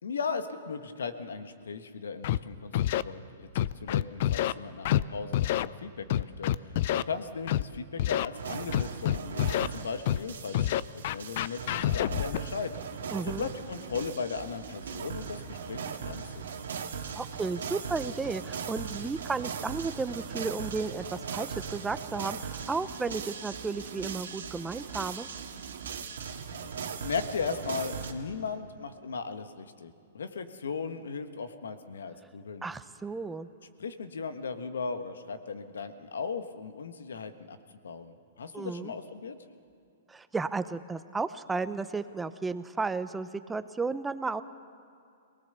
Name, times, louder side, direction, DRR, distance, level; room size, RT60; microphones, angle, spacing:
voice 1, 0.0-12.7 13.2-16.6 27.0-32.7 33.8-37.6 37.8-39.4, left 5 dB, 85° left, 9 dB, 1.4 m, -37 dB
Scratching (performance technique), 2.2-2.4 2.7-3.0 3.6-4.5 4.9-5.0 5.3-5.7 6.1-7.0 7.5-7.6 8.0-8.3 8.7-9.7 10.1-10.2 10.5-12.4, left 12 dB, 55° left, 0.5 m, -27 dB
sound 1, 8.3-28.1, right 6 dB, 80° right, 1.9 m, -39 dB
voice 2, 13.1-13.5 17.2-25.3 32.6-33.5 38.5-38.9 40.1-44.4, right 4 dB, 10° right, 12 dB, 0.7 m, -33 dB
23.0 x 19.0 x 6.9 m, 2.5 s
hypercardioid pair, 130°, 0 cm